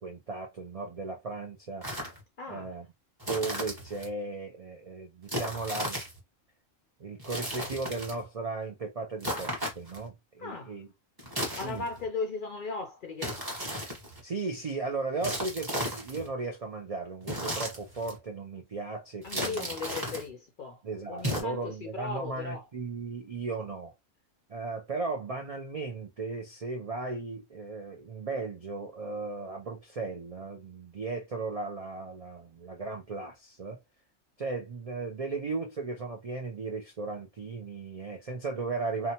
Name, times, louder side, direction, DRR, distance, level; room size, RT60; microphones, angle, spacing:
voice 1, 0.0-1.9 2.5-2.9 3.3-6.0 7.0-10.9 11.5-11.9 14.2-19.7 20.8-23.9 24.5-33.8 34.4-39.1, right 3 dB, 65° right, 0.3 m, -36 dB
sound 1, 1.8-2.2 3.2-4.1 5.3-6.2 7.2-8.2 9.2-10.1 11.2-12.1 13.2-14.2 15.2-16.3 17.2-18.2 19.2-20.3 21.2-21.4, equal, 20° right, 1.0 m, -35 dB
voice 2, 2.4-2.7 10.4-10.7 11.5-13.4 19.2-20.8 21.1-22.6, left 4 dB, 65° left, 0.5 m, -37 dB
2.8 x 2.2 x 2.8 m
omnidirectional pair, 1.3 m